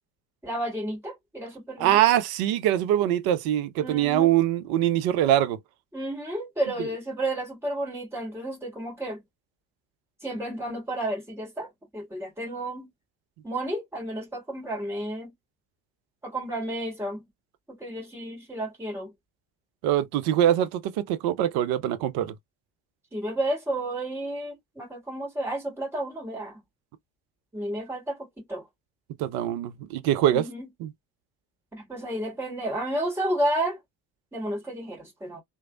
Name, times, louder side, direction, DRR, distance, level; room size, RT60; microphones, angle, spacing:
voice 1, 0.4-2.0 3.8-4.3 5.9-9.2 10.2-12.9 13.4-15.3 16.2-17.2 17.7-19.1 23.1-26.6 27.5-28.6 30.3-30.7 31.7-33.8 34.3-35.4, right 1 dB, 5° right, 1.8 m, -32 dB
voice 2, 1.8-5.6 19.8-22.3 29.2-30.5 30.8-30.9, right 11 dB, 50° right, 0.6 m, -23 dB
3.0 x 2.0 x 2.4 m
hypercardioid pair, 60°, 48 cm